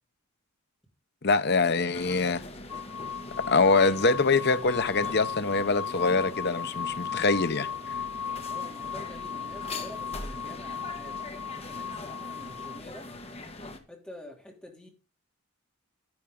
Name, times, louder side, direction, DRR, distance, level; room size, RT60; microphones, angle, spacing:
voice 1, 1.2-2.4 3.4-7.7, left 3 dB, 50° left, 0.8 m, -24 dB
sound 1, 1.9-13.8, left 2 dB, 25° left, 1.4 m, -42 dB
sound 2, 2.7-12.8, left 7 dB, 85° left, 0.5 m, -36 dB
voice 2, 8.5-13.1 13.9-14.9, left 1 dB, 5° left, 2.9 m, -47 dB
10.5 x 9.9 x 3.8 m
head